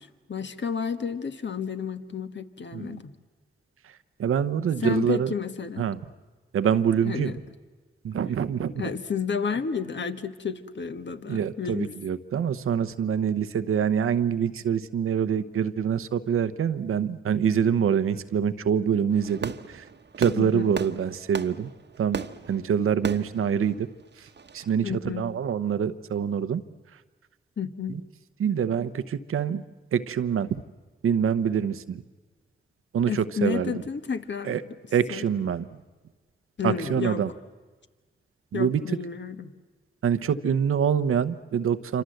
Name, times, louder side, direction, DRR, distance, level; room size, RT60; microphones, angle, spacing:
voice 1, 0.0-3.1 4.8-5.9 7.0-7.3 8.8-11.9 20.4-20.7 24.8-25.3 27.6-28.0 33.1-34.7 35.1-35.3 36.6-37.2 38.5-39.5, left 6 dB, 60° left, 9 dB, 1.6 m, -31 dB
voice 2, 3.8-5.3 5.8-6.0 6.5-7.3 8.0-8.9 11.3-19.9 20.2-21.7 22.0-23.9 24.2-24.3 24.5-26.6 27.9-28.0 28.4-29.6 29.9-30.6 31.0-32.0 32.9-33.8 34.4-34.6 34.9-35.7 36.6-37.3 38.5-38.8 40.0-42.0, right 8 dB, 85° right, 11 dB, 0.9 m, -25 dB
Fireworks, 19.1-24.7, right 5 dB, 55° right, 1.1 m, -37 dB
27.5 x 26.0 x 7.9 m, 1.3 s
cardioid pair, 45°, 21 cm